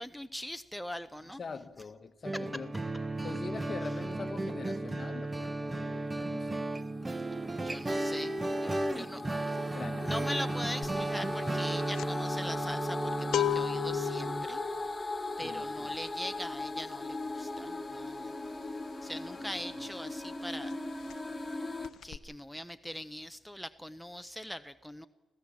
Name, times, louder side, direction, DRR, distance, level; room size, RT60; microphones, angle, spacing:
voice 1, 0.0-1.4 7.6-9.2 9.5-14.6 15.4-18.3 19.0-20.8 22.0-25.1, equal, ahead, 0.7 m, -41 dB
voice 2, 1.2-2.7 3.2-6.7 9.5-10.3 15.4-16.0 19.1-19.6, left 4 dB, 45° left, 1.3 m, -44 dB
sound 1, 2.2-14.5, right 2 dB, 20° right, 1.0 m, -34 dB
sound 2, 6.8-21.9, left 2 dB, 15° left, 1.1 m, -39 dB
sound 3, 10.8-11.1 11.3-19.9 20.2-20.4 20.7-21.5 21.8-22.2, left 11 dB, 80° left, 0.7 m, -36 dB
26.0 x 15.5 x 7.4 m
cardioid pair, 80°, 0 cm